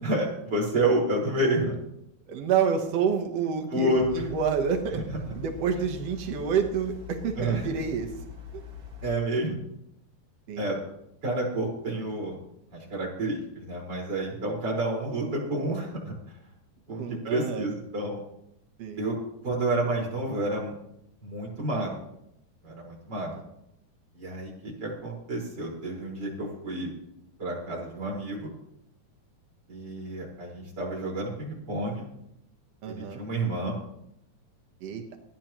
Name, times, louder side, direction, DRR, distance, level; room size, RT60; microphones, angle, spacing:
voice 1, 0.0-1.7 3.7-4.3 5.1-5.2 7.4-7.7 9.0-9.5 10.6-10.8 11.2-12.4 12.7-16.1 16.9-18.2 19.0-19.2 19.4-20.7 21.2-22.0 22.6-23.3 24.1-26.9 27.4-28.5 29.7-32.0 32.9-33.7, right 1 dB, 25° right, -3 dB, 5.1 m, -29 dB
voice 2, 2.3-3.9 4.1-5.0 5.3-8.1 10.5-10.7 17.0-17.7 18.8-19.0 32.8-33.2 34.8-35.0, right 7 dB, 85° right, 4 dB, 1.4 m, -28 dB
sound 1, 3.9-9.2, left 8 dB, 50° right, 1.9 m, -43 dB
27.5 x 10.0 x 3.0 m, 0.79 s
omnidirectional pair, 4.8 m